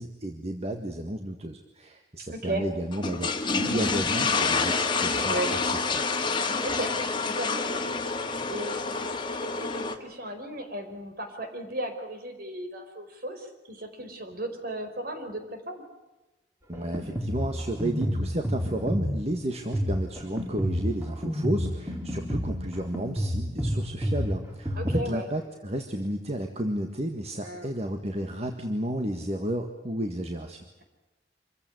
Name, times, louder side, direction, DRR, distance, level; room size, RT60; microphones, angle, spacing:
voice 1, 0.0-5.3 5.9-6.1 16.7-30.7, right 1 dB, 35° right, 5 dB, 1.7 m, -32 dB
voice 2, 2.3-2.6 5.3-5.5 6.6-6.9 7.3-9.1 9.4-15.8 24.8-25.3 27.4-27.7, right 1 dB, 55° right, 6 dB, 4.9 m, -36 dB
sound 1, 2.9-10.0, left 4 dB, 30° left, 1.9 m, -28 dB
Drum kit, 16.7-25.0, equal, 15° right, 2.9 m, -30 dB
26.5 x 15.5 x 9.6 m, 1.1 s
head